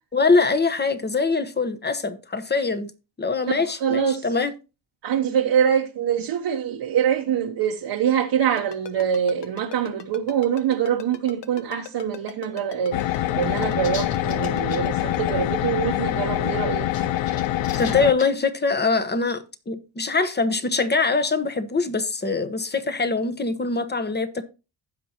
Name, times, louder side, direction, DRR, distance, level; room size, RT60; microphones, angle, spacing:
voice 1, 0.1-2.9 3.2-4.5 17.8-24.4, left 4 dB, 25° left, 1.1 m, -23 dB
voice 2, 3.5-4.3 5.0-16.9, right 8 dB, 65° right, 1.1 m, -24 dB
Ringtone, 8.6-15.3, left 10 dB, 70° left, 1.0 m, -38 dB
sound 1, 12.9-18.1, left 13 dB, 85° left, 0.7 m, -25 dB
sound 2, 13.6-14.8 16.7-18.3, left 6 dB, 55° left, 1.3 m, -36 dB
15.5 x 5.4 x 2.9 m
cardioid pair, 85°, 44 cm